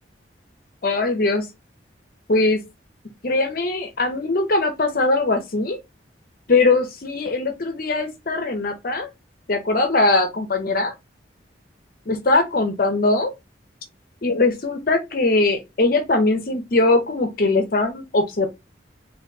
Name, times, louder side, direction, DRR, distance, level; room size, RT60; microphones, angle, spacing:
voice 1, 0.8-1.4 2.3-2.6 3.2-5.8 6.5-9.1 9.5-10.9 12.1-13.3 14.2-18.5, left 2 dB, 50° left, 0.6 m, -21 dB
4.1 x 2.6 x 2.6 m
head